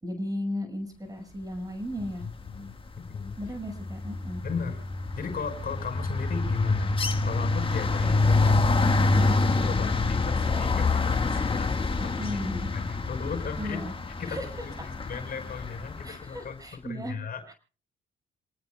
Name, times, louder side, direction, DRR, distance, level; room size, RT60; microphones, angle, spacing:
voice 1, 0.0-2.2 3.4-4.4 12.0-12.7 13.6-13.9 14.3-14.6 16.0-17.2 17.5-17.6, left 1 dB, 20° right, 6 dB, 6.1 m, -35 dB
voice 2, 2.2-3.4 4.4-4.8 5.2-6.9 7.2-12.4 12.7-13.8 14.2-16.6 16.8-17.5, left 6 dB, 50° left, 7 dB, 5.4 m, -35 dB
sound 1, 2.3-2.7 3.0-16.1, left 3 dB, 25° left, 1.7 m, -26 dB
28.0 x 19.0 x 2.3 m, 0.37 s
cardioid pair, 90°, 20 cm